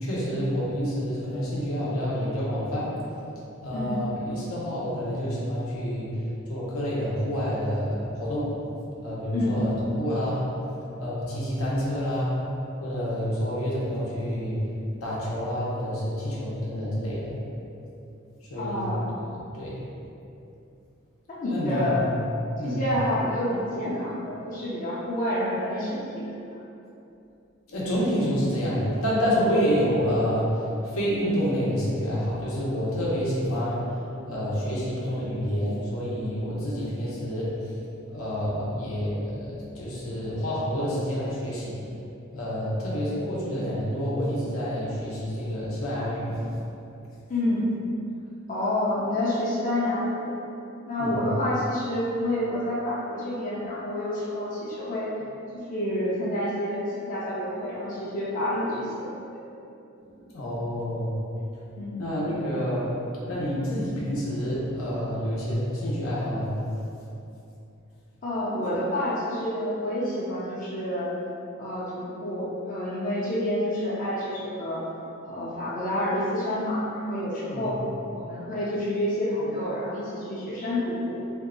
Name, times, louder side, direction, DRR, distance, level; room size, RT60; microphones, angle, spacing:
voice 1, 0.0-2.9 3.6-6.1 6.5-8.5 9.0-10.5 11.0-12.3 12.8-14.6 15.0-17.4 18.5-18.8 19.5-19.8 21.5-22.1 22.6-22.8 27.7-30.5 30.9-33.9 34.2-37.5 38.1-41.7 42.3-46.4 51.0-51.3 60.0-60.1 60.3-61.1 62.0-62.9 63.3-66.6 77.5-77.6, equal, 85° left, -6 dB, 0.8 m, -28 dB
voice 2, 3.7-4.1 9.3-9.7 18.5-19.1 21.3-22.0 22.6-26.3 47.3-47.7 48.5-50.3 50.9-55.1 55.7-59.4 61.8-62.0 68.2-71.1 71.6-74.8 75.2-77.8 78.1-81.2, left 1 dB, 40° left, -8 dB, 0.5 m, -28 dB
2.7 x 2.3 x 3.7 m, 2.7 s
head